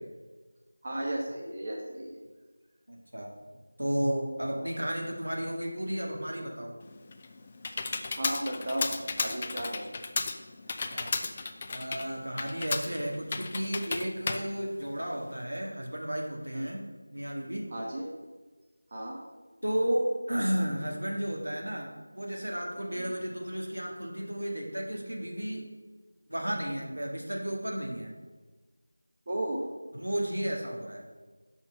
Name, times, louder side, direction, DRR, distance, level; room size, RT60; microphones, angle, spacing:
voice 1, 0.8-2.2 4.5-4.6 8.1-9.8 16.5-16.7 17.7-18.1 18.9-19.2 22.9-23.1 29.3-29.7, right 1 dB, 35° right, -2 dB, 1.1 m, -34 dB
voice 2, 2.9-3.3 3.8-6.7 10.8-11.1 11.7-16.8 17.1-17.7 19.6-25.7 26.3-28.1 29.9-31.0, equal, 80° right, 0 dB, 1.8 m, -33 dB
Computer keyboard, 6.8-15.4, left 3 dB, 25° left, 0.4 m, -34 dB
6.3 x 4.4 x 6.2 m, 1.3 s
figure-of-eight pair, 170°, 0 cm